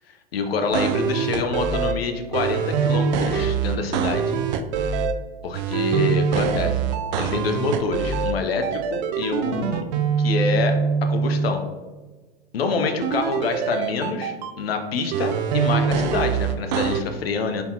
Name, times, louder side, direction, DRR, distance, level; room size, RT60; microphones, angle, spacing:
voice 1, 0.3-4.3 5.4-6.8 7.2-9.8 10.2-11.6 12.5-17.6, left 4 dB, 75° left, 6 dB, 0.6 m, -26 dB
sound 1, 0.7-1.9 2.3-5.1 5.5-8.3 8.6-11.5 13.0-14.5 15.1-17.0, right 6 dB, 50° right, 0.4 m, -23 dB
4.0 x 3.9 x 2.7 m, 1.3 s
hypercardioid pair, 100°, 30 cm